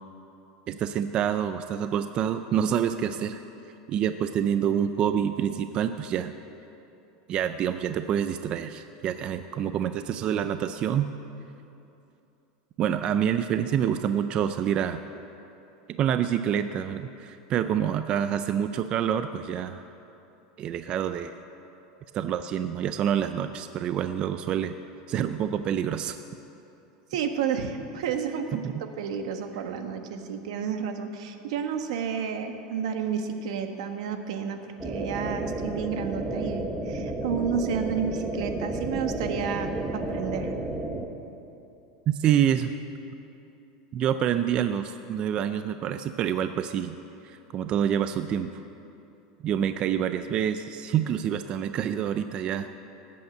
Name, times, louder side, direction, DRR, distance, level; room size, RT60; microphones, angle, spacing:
voice 1, 0.7-3.4 3.9-6.3 7.3-11.1 12.8-15.0 16.0-19.8 20.6-21.3 22.1-24.8 25.1-26.2 28.5-28.6 42.1-42.7 43.9-47.0 47.2-48.5 49.4-52.8, right 9 dB, 30° right, 10 dB, 0.4 m, -27 dB
voice 2, 27.1-40.5, right 7 dB, 80° right, 6 dB, 1.4 m, -31 dB
sound 1, 34.8-41.1, right 2 dB, 5° right, 0.9 m, -32 dB
18.5 x 8.5 x 7.9 m, 2.8 s
supercardioid pair, 165°, 3 cm